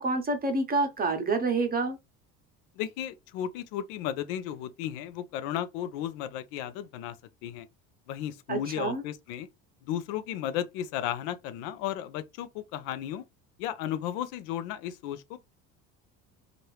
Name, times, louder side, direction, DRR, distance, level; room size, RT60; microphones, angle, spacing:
voice 1, 0.0-2.0 8.5-9.0, right 3 dB, 25° right, 0.9 m, -28 dB
voice 2, 2.8-7.2 7.4-7.7 8.1-9.5 9.8-13.2 13.6-15.4, left 11 dB, 85° left, 0.6 m, -34 dB
2.8 x 2.5 x 3.2 m
supercardioid pair, 110°, 35 cm